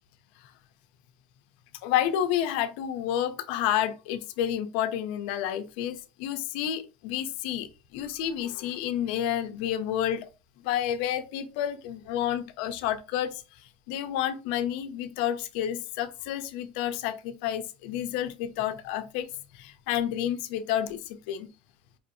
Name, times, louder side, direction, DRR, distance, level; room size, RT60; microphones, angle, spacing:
voice 1, 1.8-10.3 10.6-19.3 19.5-21.5, left 10 dB, 70° left, 0.6 m, -30 dB
4.8 x 2.5 x 2.6 m
supercardioid pair, 100°, 5 cm